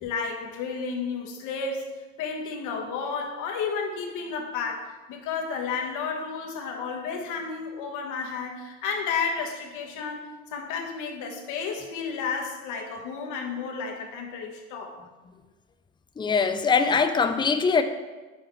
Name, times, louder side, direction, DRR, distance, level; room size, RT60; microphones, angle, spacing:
voice 1, 0.0-1.9 2.2-15.0, left 5 dB, 65° left, 2 dB, 1.3 m, -32 dB
voice 2, 16.2-17.8, left 5 dB, 15° left, 8 dB, 0.5 m, -22 dB
6.4 x 4.9 x 4.5 m, 1.2 s
supercardioid pair, 85°, 33 cm